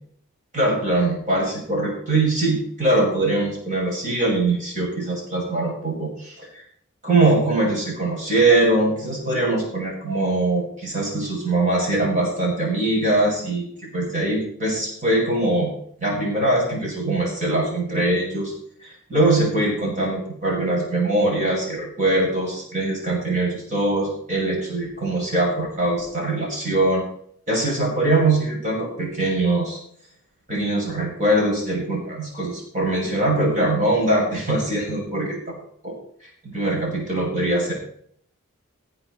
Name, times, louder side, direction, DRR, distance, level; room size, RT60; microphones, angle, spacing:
voice 1, 0.5-6.6 7.0-13.7 13.9-15.7 16.0-18.5 18.8-27.0 27.5-29.8 30.5-35.5 35.8-35.9 36.2-37.7, right 2 dB, 35° right, -2 dB, 6.8 m, -22 dB
19.0 x 8.1 x 4.7 m, 0.64 s
head